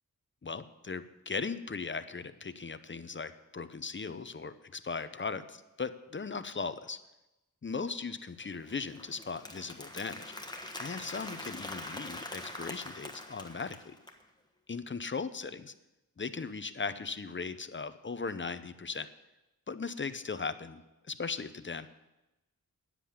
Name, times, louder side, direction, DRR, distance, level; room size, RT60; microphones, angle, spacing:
voice 1, 0.4-7.0 7.6-10.3 10.8-13.9 14.7-15.7 16.2-19.1 19.7-21.9, left 4 dB, 35° left, 12 dB, 0.7 m, -38 dB
Applause, 8.4-14.2, left 1 dB, 10° left, 1.3 m, -44 dB
9.9 x 7.5 x 8.6 m, 0.99 s
wide cardioid pair, 80°, 35 cm